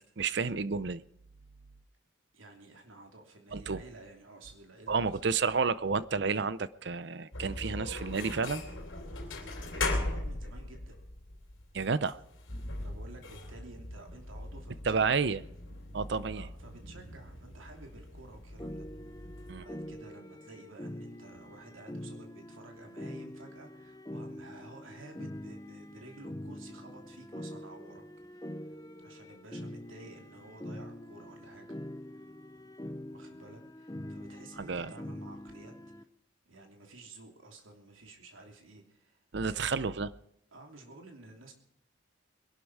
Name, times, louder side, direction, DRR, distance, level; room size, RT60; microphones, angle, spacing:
voice 1, 0.2-1.0 3.5-3.8 4.9-8.6 11.7-12.2 14.9-15.4 15.9-16.5 19.5-19.6 34.6-34.9 39.3-40.1, right 5 dB, 55° right, 0.6 m, -30 dB
voice 2, 2.3-5.4 9.7-11.0 12.8-15.3 16.3-18.9 19.2-19.3 19.6-28.0 28.3-31.7 32.1-32.2 33.0-36.1 36.5-39.8 40.5-41.5, right 2 dB, 85° right, 3.0 m, -52 dB
sound 1, 7.3-19.5, left 2 dB, 80° left, 3.2 m, -39 dB
sound 2, 18.6-36.0, left 1 dB, 15° left, 0.7 m, -44 dB
22.0 x 11.5 x 4.8 m
head